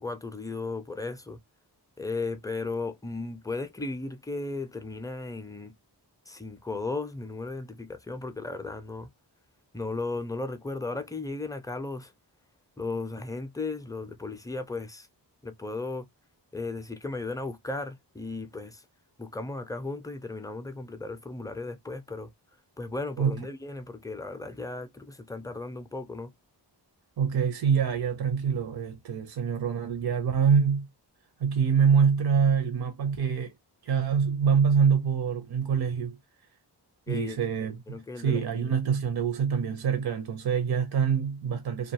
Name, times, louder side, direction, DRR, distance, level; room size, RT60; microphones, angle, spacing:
voice 1, 0.0-1.4 2.0-5.7 6.3-9.1 9.7-12.1 12.8-15.1 15.4-16.1 16.5-18.9 19.2-22.3 22.8-26.3 37.1-37.4 37.7-38.8, left 3 dB, 10° left, 0.4 m, -35 dB
voice 2, 27.2-30.9 31.4-33.5 33.8-36.2 37.1-41.9, right 6 dB, 60° right, 0.6 m, -25 dB
2.6 x 2.3 x 2.7 m
wide cardioid pair, 75°, 42 cm